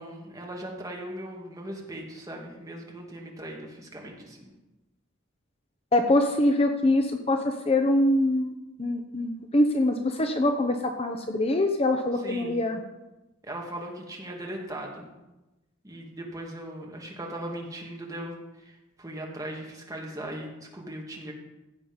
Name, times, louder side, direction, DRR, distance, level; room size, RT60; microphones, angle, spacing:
voice 1, 0.0-4.5 12.1-12.6 13.4-15.1 15.8-21.3, right 1 dB, 15° right, -1 dB, 2.2 m, -39 dB
voice 2, 5.9-8.5 8.8-12.8, left 1 dB, 30° left, 5 dB, 0.8 m, -24 dB
16.0 x 7.1 x 5.5 m, 1.0 s
head